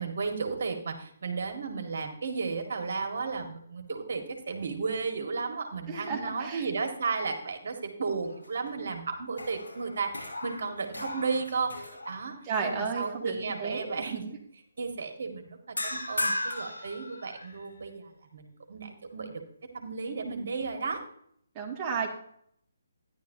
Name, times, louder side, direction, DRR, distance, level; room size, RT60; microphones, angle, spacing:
voice 1, 0.0-12.3 12.6-14.2 14.8-19.4 19.7-21.0, right 4 dB, 55° right, 6 dB, 2.0 m, -34 dB
voice 2, 5.9-6.7 12.5-13.9 21.6-22.1, right 5 dB, 25° right, 0 dB, 2.2 m, -33 dB
sound 1, 8.2-8.9 9.3-12.6 13.0-13.3 15.8-17.7, left 1 dB, 70° left, 4.0 m, -36 dB
12.5 x 10.5 x 2.8 m, 0.67 s
figure-of-eight pair, 140°, 0 cm